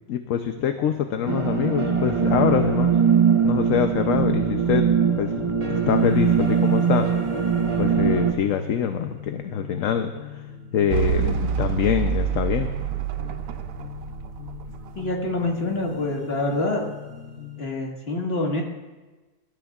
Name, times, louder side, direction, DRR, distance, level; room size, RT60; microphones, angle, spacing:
voice 1, 0.1-2.9 3.4-4.9 5.2-5.3 5.7-7.1 7.8-10.5 10.7-12.7, left 8 dB, 65° left, 6 dB, 1.0 m, -24 dB
sound 1, 0.5-17.6, left 8 dB, 85° left, 4.0 m, -41 dB
sound 2, 1.3-8.3, right 7 dB, 30° right, 0.6 m, -21 dB
sound 3, 10.9-15.4, right 8 dB, 70° right, 0.9 m, -27 dB
voice 2, 15.0-16.9 17.6-18.6, left 2 dB, 40° left, 0 dB, 1.9 m, -26 dB
23.5 x 13.5 x 2.4 m, 1.2 s
omnidirectional pair, 1.6 m